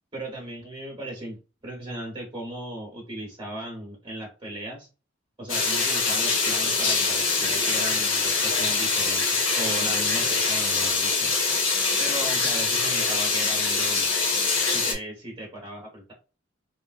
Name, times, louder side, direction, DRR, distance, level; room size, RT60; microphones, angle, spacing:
voice 1, 0.1-4.9 5.4-11.3 12.0-14.1 14.7-16.1, right 1 dB, 25° right, -3 dB, 0.9 m, -37 dB
sound 1, 5.5-14.9, left 4 dB, 80° left, 1.0 m, -24 dB
3.1 x 2.5 x 2.4 m, 0.32 s
head